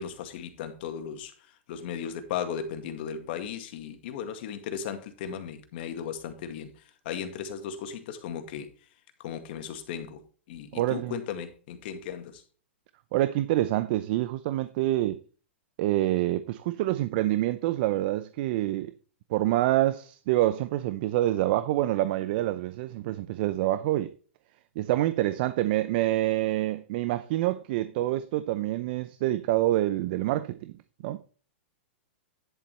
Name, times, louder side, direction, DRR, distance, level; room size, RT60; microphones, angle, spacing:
voice 1, 0.0-8.7 9.2-12.4, left 8 dB, 55° left, 2.0 m, -36 dB
voice 2, 10.7-11.1 13.1-15.2 15.8-18.9 19.3-24.1 24.8-30.7 31.0-31.2, right 15 dB, 50° right, 0.6 m, -26 dB
10.5 x 7.2 x 3.4 m
hypercardioid pair, 135°, 7 cm